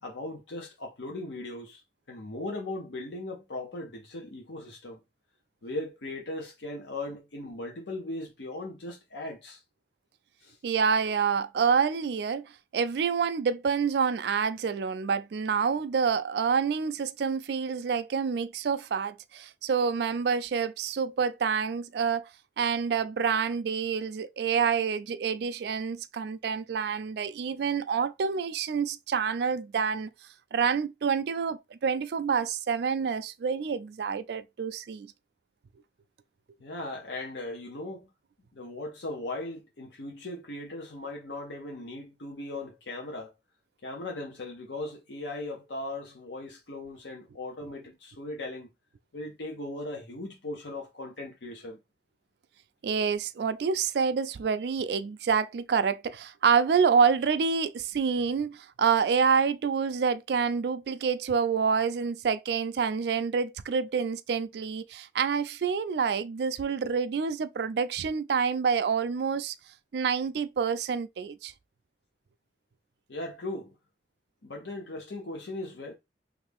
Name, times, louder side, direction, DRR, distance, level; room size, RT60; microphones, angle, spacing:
voice 1, 0.0-1.8 2.1-5.0 5.6-9.6 10.4-10.6 36.6-38.1 38.5-43.3 43.8-48.7 49.1-51.8 73.1-73.7 74.4-76.0, left 2 dB, 85° left, 0.8 m, -38 dB
voice 2, 10.6-22.3 22.6-30.1 30.5-35.1 52.8-69.6 69.9-71.5, right 6 dB, 70° right, 0.3 m, -27 dB
3.2 x 2.5 x 3.4 m
head